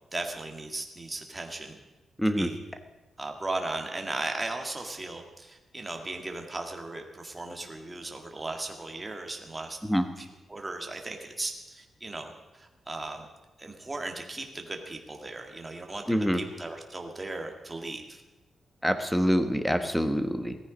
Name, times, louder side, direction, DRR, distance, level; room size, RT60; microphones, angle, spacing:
voice 1, 0.1-1.8 2.4-2.6 3.2-9.8 10.2-13.2 13.6-18.2, right 2 dB, 15° right, 3 dB, 1.9 m, -37 dB
voice 2, 2.2-2.5 9.8-10.0 16.1-16.4 18.8-20.6, equal, ahead, 8 dB, 1.1 m, -25 dB
17.5 x 14.0 x 5.2 m, 1.1 s
wide cardioid pair, 140°, 0 cm